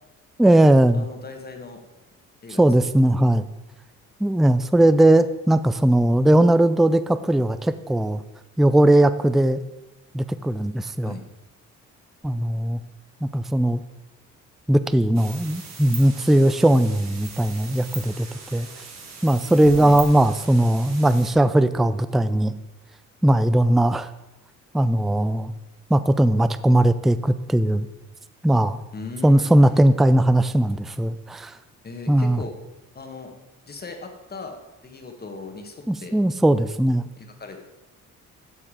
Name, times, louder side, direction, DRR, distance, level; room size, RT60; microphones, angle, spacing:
voice 1, 0.4-1.0 2.6-3.5 4.2-8.2 8.6-9.6 10.1-11.1 12.2-12.8 13.2-13.8 14.7-18.7 19.2-22.5 23.2-24.1 24.7-25.5 25.9-27.9 28.4-28.8 29.2-31.5 32.1-32.4 35.9-37.1, right 1 dB, ahead, 14 dB, 0.3 m, -19 dB
voice 2, 0.9-1.8 2.4-2.9 11.0-11.2 19.7-20.0 28.9-29.9 31.8-32.5 32.9-33.3 33.7-36.2 37.2-37.6, left 3 dB, 30° left, 4 dB, 1.6 m, -38 dB
sound 1, 15.1-21.3, right 5 dB, 60° right, 2.1 m, -39 dB
13.5 x 4.6 x 4.9 m, 1.0 s
cardioid pair, 90°, 30 cm